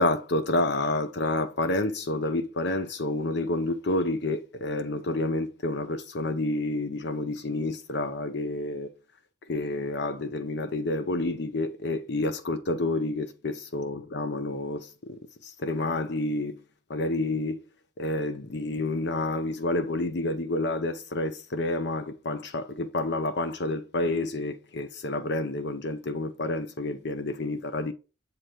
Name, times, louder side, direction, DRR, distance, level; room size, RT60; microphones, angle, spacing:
voice 1, 0.0-8.9 9.4-16.6 16.9-17.6 18.0-27.9, left 2 dB, 55° left, 0.6 m, -29 dB
7.7 x 2.9 x 4.8 m
head